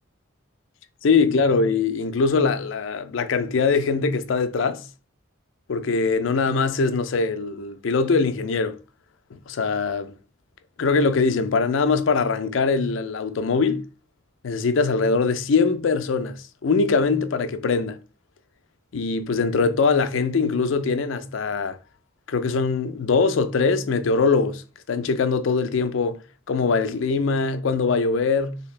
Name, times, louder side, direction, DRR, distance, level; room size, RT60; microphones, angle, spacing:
voice 1, 1.0-4.8 5.7-8.8 9.3-10.1 10.8-13.8 14.4-18.0 18.9-21.8 22.3-24.6 24.9-26.2 26.5-28.6, left 4 dB, 70° left, 0.4 m, -22 dB
3.3 x 2.8 x 3.1 m
head